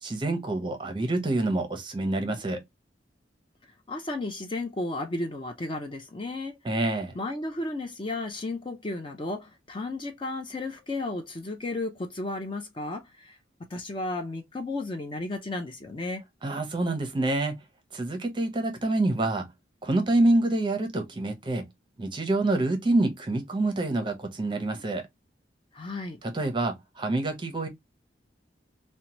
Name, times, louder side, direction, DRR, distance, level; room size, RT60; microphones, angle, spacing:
voice 1, 0.0-2.6 6.6-7.1 16.4-17.5 17.9-19.5 19.8-21.6 22.0-25.0 26.2-27.7, right 2 dB, 25° right, 0.6 m, -27 dB
voice 2, 3.9-6.6 7.1-13.4 13.7-16.2 25.7-26.2, left 2 dB, 25° left, 0.4 m, -33 dB
2.8 x 2.1 x 2.9 m
head